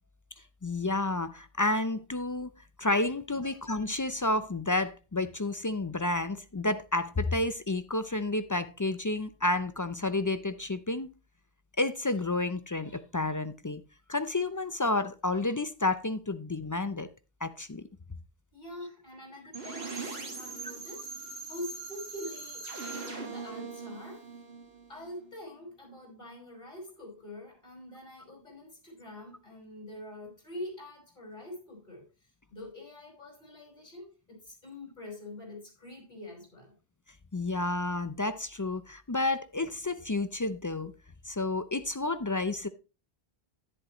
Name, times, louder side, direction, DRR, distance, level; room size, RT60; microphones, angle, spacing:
voice 1, 0.6-2.5 2.8-11.1 11.8-13.8 14.1-17.1 17.4-17.8 37.3-40.9 41.2-42.7, left 2 dB, 30° left, 0.3 m, -30 dB
voice 2, 18.5-24.3 24.9-36.7, left 1 dB, 50° left, 5.5 m, -45 dB
sound 1, 19.5-25.3, right 4 dB, 80° right, 2.4 m, -41 dB
10.5 x 10.0 x 3.0 m
omnidirectional pair, 1.0 m